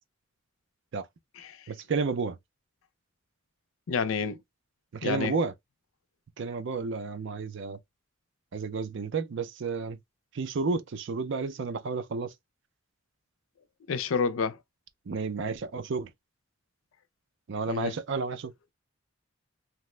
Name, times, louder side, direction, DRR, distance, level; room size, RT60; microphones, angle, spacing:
voice 1, 1.7-2.4 4.9-5.5 6.4-7.8 8.5-10.0 10.3-12.3 15.1-16.1 17.5-18.5, right 4 dB, 60° right, 0.4 m, -31 dB
voice 2, 3.9-4.4 5.0-5.3 13.9-14.6 17.7-17.9, left 5 dB, 70° left, 0.4 m, -29 dB
2.9 x 2.0 x 3.1 m
head